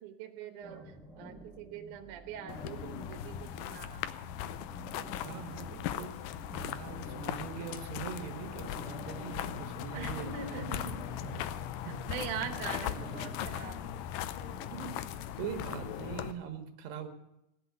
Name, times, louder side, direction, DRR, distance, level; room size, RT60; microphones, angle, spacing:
voice 1, 0.0-4.0 9.9-11.1 12.1-13.9 14.7-15.0, right 8 dB, 65° right, 6 dB, 2.3 m, -42 dB
sound 1, 0.6-14.9, right 1 dB, ahead, 0.5 m, -50 dB
sound 2, 2.5-16.3, left 11 dB, 80° left, 2.0 m, -39 dB
voice 2, 5.2-6.2 6.5-10.7 11.2-11.6 11.9-12.4 15.4-17.1, right 7 dB, 85° right, 6 dB, 3.5 m, -42 dB
18.0 x 7.8 x 9.4 m, 0.87 s
omnidirectional pair, 4.7 m